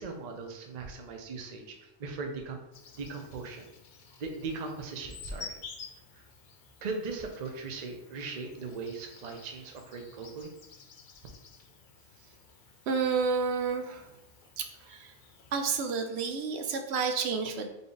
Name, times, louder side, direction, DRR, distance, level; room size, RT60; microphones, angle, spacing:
voice 1, 0.0-2.6 2.9-3.7 4.2-5.6 6.1-6.2 6.8-10.5, right 4 dB, 45° right, 3 dB, 0.7 m, -39 dB
Insect, 2.7-15.8, left 5 dB, 55° left, 0.8 m, -51 dB
voice 2, 12.9-14.1 14.6-15.1 15.5-17.7, right 5 dB, 85° right, 5 dB, 0.9 m, -30 dB
3.8 x 3.5 x 3.8 m, 0.90 s
omnidirectional pair, 1.1 m